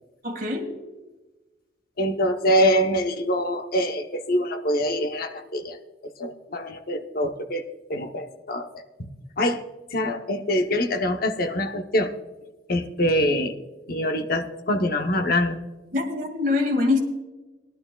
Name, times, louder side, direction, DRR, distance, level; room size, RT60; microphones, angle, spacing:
voice 1, 0.2-0.7 15.9-17.0, left 3 dB, 50° right, 2 dB, 2.0 m, -24 dB
voice 2, 2.0-5.8 6.0-7.6 7.9-8.8 9.4-9.6 9.9-12.1 12.7-13.5 13.9-15.6, equal, 55° left, 6 dB, 0.9 m, -24 dB
19.0 x 11.5 x 2.3 m, 1.1 s
head